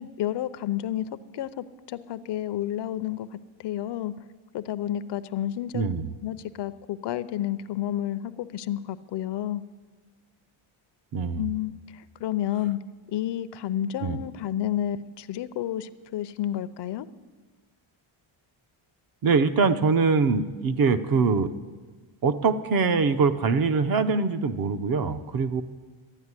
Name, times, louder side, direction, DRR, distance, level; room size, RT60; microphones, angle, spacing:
voice 1, 0.0-3.3 3.6-4.1 4.5-5.9 6.2-9.6 11.4-12.8 13.1-17.1, left 12 dB, 55° left, 13 dB, 0.6 m, -30 dB
voice 2, 5.7-6.1 11.1-11.5 14.0-14.2 19.2-21.5 22.2-25.6, right 4 dB, 45° right, 10 dB, 0.6 m, -23 dB
12.5 x 9.7 x 9.6 m, 1.4 s
cardioid pair, 180°, 50 cm